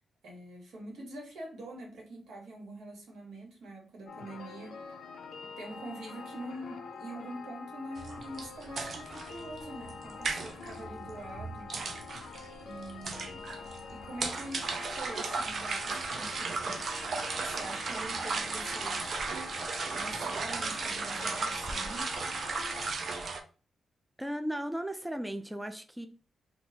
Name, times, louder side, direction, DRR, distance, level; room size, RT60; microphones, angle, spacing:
voice 1, 0.2-4.8 5.6-11.7 12.6-13.4 13.9-17.0 17.4-19.2 19.9-22.1, right 1 dB, 85° right, 1.2 m, -45 dB
sound 1, 4.1-22.9, left 5 dB, 85° left, 0.4 m, -45 dB
sound 2, 8.0-23.4, right 4 dB, 60° right, 0.5 m, -36 dB
voice 2, 24.2-26.1, equal, 5° right, 0.3 m, -36 dB
3.9 x 2.3 x 2.8 m
cardioid pair, 95°, 0 cm